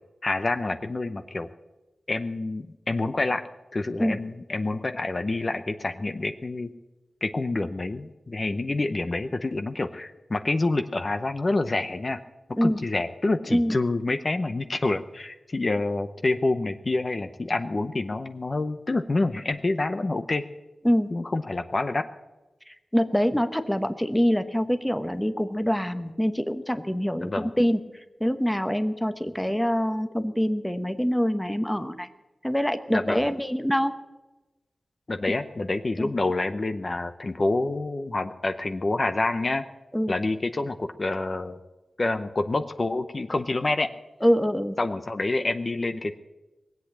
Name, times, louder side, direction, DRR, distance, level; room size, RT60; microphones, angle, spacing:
voice 1, 0.2-1.5 2.1-3.4 3.7-6.7 7.2-12.2 12.6-20.4 21.1-22.0 27.2-27.5 32.9-33.3 35.1-39.6 40.1-41.6 42.0-43.9 44.8-46.1, left 2 dB, 40° left, 9 dB, 0.7 m, -27 dB
voice 2, 22.7-27.8 28.2-32.1 32.4-33.9 36.0-36.1 39.9-40.1 44.2-44.8, equal, 5° left, 10 dB, 0.9 m, -25 dB
20.0 x 8.3 x 8.7 m, 1.1 s
wide cardioid pair, 90°, 0 cm